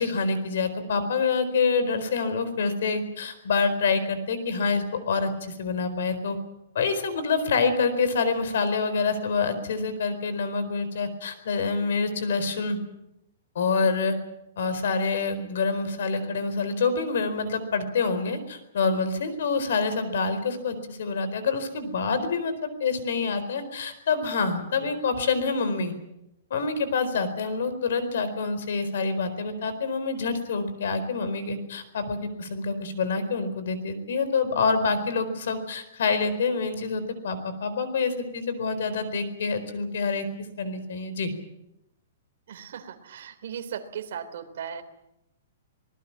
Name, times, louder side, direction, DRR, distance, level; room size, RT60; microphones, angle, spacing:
voice 1, 0.0-6.4 6.7-12.8 13.5-14.2 14.6-25.9 26.5-40.3 40.6-41.3, left 4 dB, 60° left, 12 dB, 4.4 m, -27 dB
voice 2, 42.5-44.8, right 8 dB, 55° right, 5 dB, 3.3 m, -37 dB
25.5 x 20.0 x 7.4 m, 0.85 s
hypercardioid pair, 175°, 0 cm